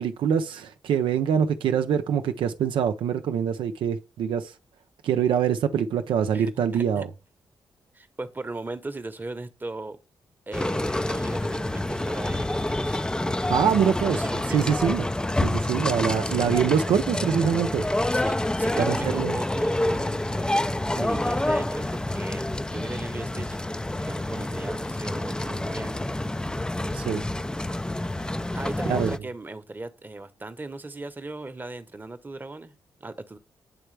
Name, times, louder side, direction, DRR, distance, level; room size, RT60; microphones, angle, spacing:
voice 1, 0.0-4.5 5.0-7.1 13.5-14.2 14.5-15.0 15.4-17.9 18.8-19.4 26.9-27.2 28.9-29.1, right 8 dB, 80° right, 0.5 m, -24 dB
voice 2, 6.3-7.1 7.9-10.0 10.5-13.0 13.4-13.5 14.1-14.6 16.2-16.3 18.1-20.6 20.9-23.6 23.9-26.2 28.5-32.7 33.0-33.4, right 2 dB, 20° right, 0.9 m, -37 dB
sound 1, 10.5-29.2, left 1 dB, 10° left, 0.4 m, -28 dB
9.1 x 3.3 x 3.2 m
cardioid pair, 65°, 8 cm